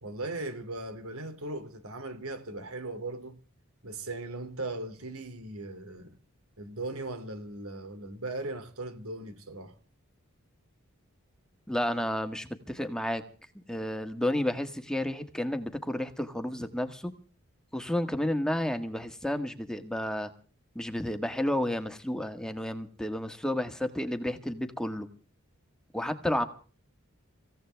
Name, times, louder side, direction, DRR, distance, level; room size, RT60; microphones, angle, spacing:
voice 1, 0.0-3.4 3.8-6.2 6.6-9.7, right 2 dB, 85° right, 2.7 m, -38 dB
voice 2, 11.7-13.2 13.7-17.1 17.7-20.3 20.7-25.1 25.9-26.4, left 1 dB, 5° left, 1.5 m, -31 dB
26.0 x 16.0 x 3.4 m
head